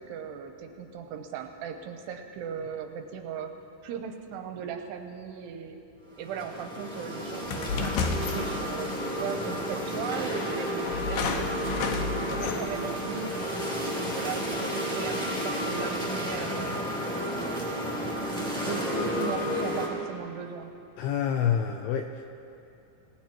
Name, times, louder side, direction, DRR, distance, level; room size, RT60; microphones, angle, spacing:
voice 1, 0.1-3.5 3.8-5.8 6.2-13.6 14.0-16.9 17.3-17.7 18.7-20.7, right 7 dB, 80° right, 5 dB, 2.7 m, -38 dB
sound 1, 6.1-19.9, equal, ahead, 1.8 m, -32 dB
sound 2, 7.4-9.0 9.9-10.0 10.8-12.9, left 4 dB, 70° left, 2.3 m, -31 dB
voice 2, 21.0-22.3, left 8 dB, 90° left, 5 dB, 2.3 m, -27 dB
26.5 x 18.0 x 3.0 m, 2.6 s
omnidirectional pair, 5.2 m